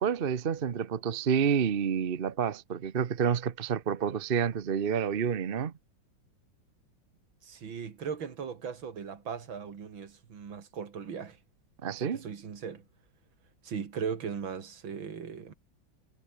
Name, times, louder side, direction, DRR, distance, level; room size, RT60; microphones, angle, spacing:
voice 1, 0.0-5.7 11.8-12.2, right 7 dB, 40° right, 0.8 m, -29 dB
voice 2, 7.4-11.4 12.0-12.8 13.6-15.5, right 6 dB, 90° right, 2.9 m, -38 dB
omnidirectional pair, 2.1 m